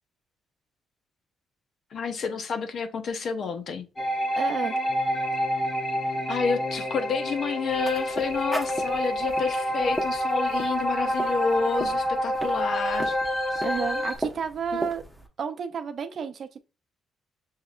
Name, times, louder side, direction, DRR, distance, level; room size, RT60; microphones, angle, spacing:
voice 1, 1.9-3.9 6.3-13.2 13.5-13.6 14.7-14.9, left 5 dB, 60° left, 0.8 m, -29 dB
sound 1, 4.0-14.2, equal, 30° left, 1.0 m, -28 dB
voice 2, 4.4-4.7 13.6-15.0 15.4-16.6, right 6 dB, 55° right, 0.5 m, -31 dB
sound 2, 7.7-15.3, equal, 5° left, 1.0 m, -38 dB
6.4 x 2.8 x 2.4 m
cardioid pair, 90°, 0 cm